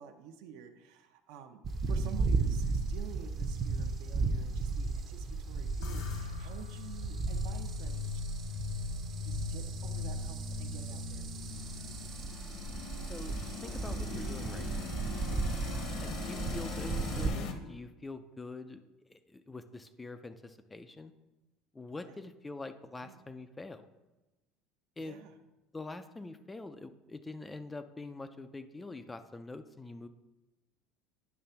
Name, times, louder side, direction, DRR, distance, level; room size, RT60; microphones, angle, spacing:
voice 1, 0.0-8.2 9.2-11.2 22.0-22.2 23.0-23.2 25.0-25.3, right 8 dB, 70° right, 7 dB, 0.7 m, -50 dB
sound 1, 1.6-17.3, right 4 dB, 30° right, 0.6 m, -35 dB
sound 2, 5.8-16.4, left 4 dB, 75° left, 1.2 m, -41 dB
sound 3, 11.1-17.5, left 5 dB, 50° left, 0.8 m, -42 dB
voice 2, 13.0-14.7 16.0-18.8 19.1-21.1 21.7-23.8 25.0-25.2 25.7-30.1, left 3 dB, 10° left, 9 dB, 0.3 m, -45 dB
9.5 x 3.3 x 5.7 m, 1.1 s
cardioid pair, 160°, 0 cm